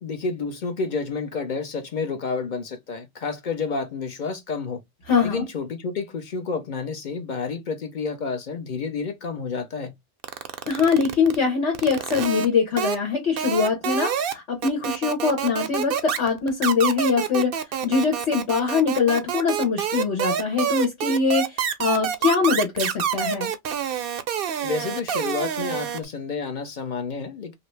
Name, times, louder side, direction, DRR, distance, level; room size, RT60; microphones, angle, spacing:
voice 1, 0.0-4.8 5.2-9.9 24.6-27.5, left 4 dB, 50° left, 0.8 m, -30 dB
voice 2, 5.1-5.4 10.7-23.5, left 5 dB, 80° left, 1.5 m, -23 dB
sound 1, 10.2-11.4 11.7-12.5 12.8-13.0 13.4-14.3 14.6-26.0, right 8 dB, 60° right, 0.7 m, -27 dB
2.7 x 2.7 x 3.1 m
omnidirectional pair, 1.2 m